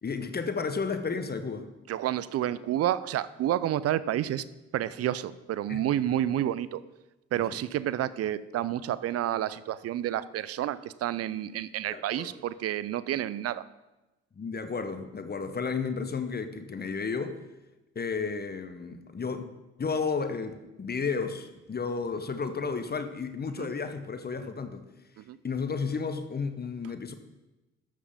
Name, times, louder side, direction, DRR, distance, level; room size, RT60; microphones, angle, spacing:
voice 1, 0.0-1.7 5.7-5.8 7.4-7.6 11.9-12.3 14.3-17.4 17.9-19.5 19.8-24.8 25.4-27.1, left 5 dB, 30° left, 9 dB, 1.1 m, -32 dB
voice 2, 1.9-4.4 4.7-6.8 7.3-13.7 23.6-23.7 25.2-25.4, right 12 dB, 50° right, 17 dB, 0.5 m, -30 dB
12.5 x 7.5 x 3.6 m, 1.0 s
figure-of-eight pair, 40°, 32 cm